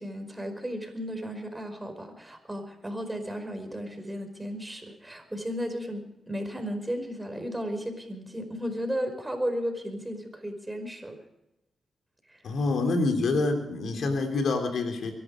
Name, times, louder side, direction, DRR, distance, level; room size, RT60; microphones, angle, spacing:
voice 1, 0.0-11.2, equal, 15° right, 6 dB, 5.2 m, -34 dB
voice 2, 12.4-15.1, left 3 dB, 70° left, 5 dB, 3.4 m, -26 dB
23.5 x 11.5 x 5.2 m, 0.87 s
supercardioid pair, 45°, 0 cm